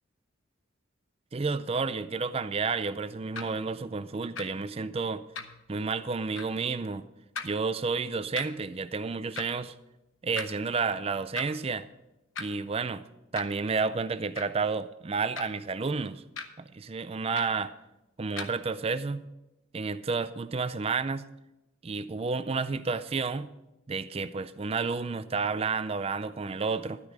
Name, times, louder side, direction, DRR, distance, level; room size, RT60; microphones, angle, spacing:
voice 1, 1.3-5.2 5.7-7.1 7.4-9.7 10.2-11.9 12.4-13.0 13.3-16.2 16.7-17.7 18.2-19.2 19.7-21.2 21.8-23.5 23.9-27.0, right 4 dB, 30° right, 14 dB, 0.4 m, -31 dB
sound 1, 3.4-3.5 4.4-4.5 5.4-5.6 6.4-6.5 7.4-7.5 8.4-8.5 9.4-9.5 10.4-10.5 11.4-11.6 12.4-12.5 13.4-13.6 14.4-14.6 15.4-15.6 16.4-16.5 17.4-17.6 18.4-18.6, left 5 dB, 65° left, 1.0 m, -38 dB
12.0 x 9.9 x 4.9 m, 0.95 s
head